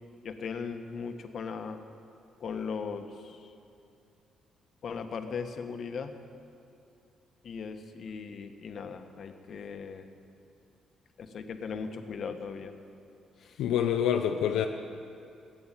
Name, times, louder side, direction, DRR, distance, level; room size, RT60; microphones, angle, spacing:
voice 1, 0.2-1.8 2.4-3.5 4.8-6.1 7.4-10.1 11.2-12.7 13.4-13.6, left 5 dB, 60° left, 7 dB, 1.1 m, -38 dB
voice 2, 13.6-14.7, left 9 dB, 85° left, 4 dB, 0.6 m, -26 dB
15.5 x 8.6 x 9.0 m, 2.6 s
cardioid pair, 90°, 0 cm